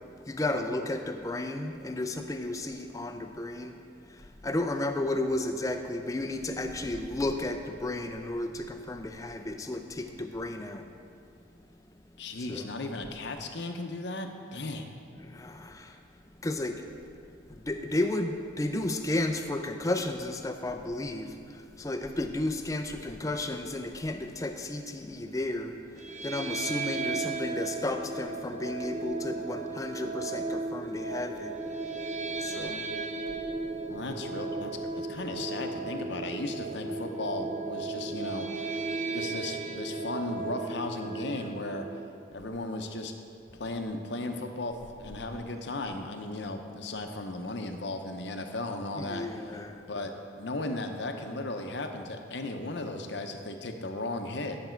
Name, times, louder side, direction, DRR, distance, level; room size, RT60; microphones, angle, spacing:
voice 1, 0.3-3.8 4.1-10.8 12.5-12.7 15.2-16.0 16.4-16.8 17.5-25.7 26.2-31.5 32.4-32.9 49.0-49.8, left 2 dB, 15° left, 6 dB, 0.4 m, -33 dB
voice 2, 12.2-14.9 33.9-34.7 35.0-41.9 42.3-43.1 43.6-49.6 49.9-54.6, left 2 dB, 60° left, 5 dB, 0.7 m, -36 dB
sound 1, 26.0-42.1, right 3 dB, 35° right, 0.6 m, -35 dB
10.5 x 6.8 x 4.5 m, 2.5 s
head